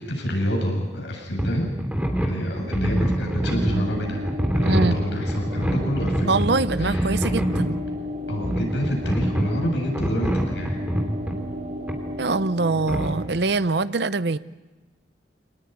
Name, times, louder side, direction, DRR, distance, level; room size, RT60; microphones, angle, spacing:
voice 1, 0.0-1.7 2.2-4.2 4.5-6.3 6.8-7.1 8.3-10.8, equal, 70° left, 1 dB, 7.6 m, -27 dB
sound 1, 1.4-1.5 1.8-3.9 4.3-7.7 8.4-9.6 9.9-11.4 11.9-12.0 12.9-13.1, equal, 10° right, 3.2 m, -25 dB
sound 2, 3.4-13.3, left 1 dB, 45° right, 3.0 m, -33 dB
voice 2, 4.7-5.0 6.3-7.8 12.2-14.4, right 3 dB, 65° right, 15 dB, 0.7 m, -23 dB
26.0 x 19.0 x 9.4 m, 1.2 s
head